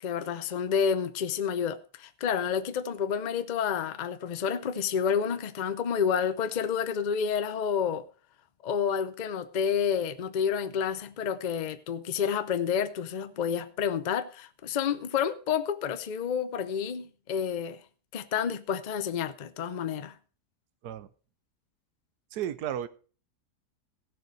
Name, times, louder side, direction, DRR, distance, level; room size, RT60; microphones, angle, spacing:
voice 1, 0.0-8.0 8.6-17.8 18.1-20.1, left 7 dB, 80° left, 0.4 m, -29 dB
voice 2, 22.3-22.9, right 10 dB, 75° right, 1.3 m, -33 dB
16.0 x 6.8 x 4.6 m
omnidirectional pair, 1.7 m